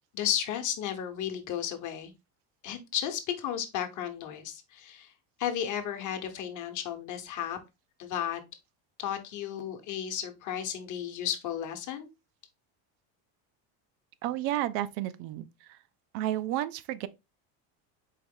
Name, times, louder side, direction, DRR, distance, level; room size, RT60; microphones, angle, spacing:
voice 1, 0.1-2.1 2.6-5.1 5.4-7.6 8.0-8.4 9.0-12.1, left 9 dB, 45° left, 1.0 m, -33 dB
voice 2, 14.2-15.8 16.1-17.1, right 13 dB, 70° right, 0.6 m, -32 dB
4.7 x 3.1 x 3.6 m
cardioid pair, 150°, 43 cm